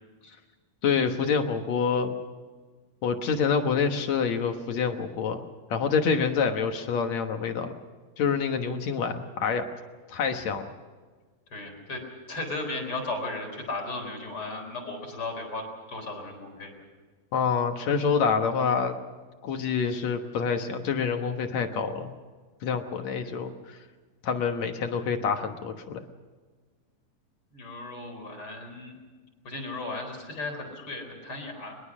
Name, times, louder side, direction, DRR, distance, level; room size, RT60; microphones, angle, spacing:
voice 1, 0.8-2.1 3.0-5.4 5.7-7.7 8.2-9.7 10.1-10.7 17.3-18.9 19.4-22.1 22.6-23.8 24.2-26.0, left 6 dB, 60° left, 6 dB, 2.2 m, -27 dB
voice 2, 11.5-12.0 12.3-16.7 23.2-23.4 27.5-29.0 29.4-31.8, left 2 dB, 35° left, 3 dB, 4.7 m, -36 dB
23.0 x 21.5 x 6.2 m, 1.4 s
omnidirectional pair, 4.2 m